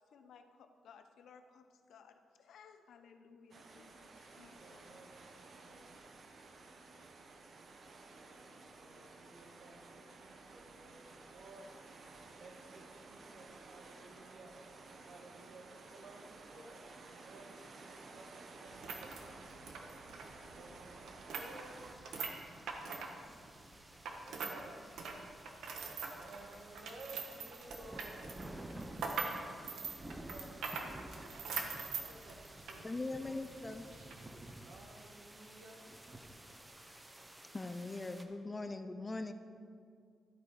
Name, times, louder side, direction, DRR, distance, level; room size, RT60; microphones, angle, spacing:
voice 1, 0.0-5.0, left 6 dB, 70° left, 7 dB, 0.8 m, -60 dB
sound 1, 3.5-22.0, right 3 dB, 40° right, 0.9 m, -54 dB
voice 2, 4.6-5.8 8.7-11.7 12.4-14.5 15.1-16.8 17.2-19.7 20.5-22.8 24.1-24.9 26.1-28.5 29.4-33.4 34.6-35.8, right 2 dB, 60° right, 2 dB, 1.7 m, -56 dB
sound 2, 18.7-24.6 24.9-32.8 33.1-33.2 33.9-34.1, right 5 dB, 85° right, 1.3 m, -43 dB
sound 3, 21.4-38.2, right 1 dB, 10° right, 0.8 m, -52 dB
voice 3, 32.8-33.9 37.5-39.3, left 2 dB, 20° left, 9 dB, 0.4 m, -41 dB
13.5 x 8.5 x 4.8 m, 2.3 s
wide cardioid pair, 160°, 0 cm